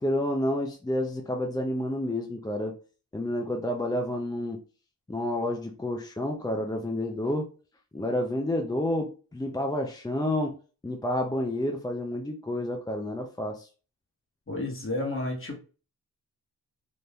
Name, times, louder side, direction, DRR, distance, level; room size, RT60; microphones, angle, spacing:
voice 1, 0.0-2.8 3.1-4.6 5.1-7.5 7.9-10.5 10.8-13.7, left 1 dB, 10° left, 1 dB, 0.4 m, -29 dB
voice 2, 14.5-15.6, left 2 dB, 30° left, 0 dB, 1.1 m, -31 dB
3.4 x 2.5 x 2.2 m, 0.36 s
cardioid pair, 65°, 40 cm